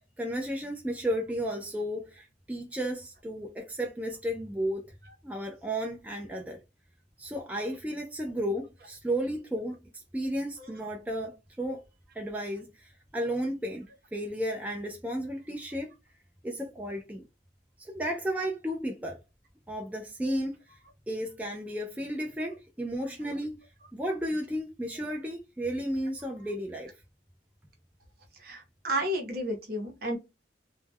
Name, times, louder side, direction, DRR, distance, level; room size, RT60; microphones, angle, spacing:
voice 1, 0.2-4.8 5.2-6.6 7.2-11.8 12.1-15.9 16.4-17.2 17.8-19.2 19.7-20.8 21.1-23.6 23.9-26.9, equal, 10° right, 0.3 m, -33 dB
voice 2, 28.4-30.2, right 1 dB, 55° right, 0.7 m, -31 dB
2.2 x 2.1 x 3.4 m
head